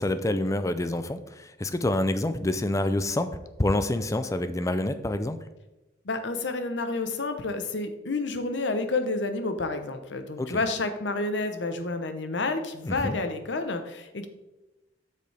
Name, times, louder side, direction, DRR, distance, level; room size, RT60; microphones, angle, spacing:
voice 1, 0.0-5.4 10.4-10.6 12.8-13.2, left 1 dB, 15° left, 11 dB, 0.4 m, -27 dB
voice 2, 6.0-14.3, left 3 dB, 70° left, 8 dB, 0.9 m, -30 dB
7.8 x 6.8 x 3.4 m, 1.0 s
head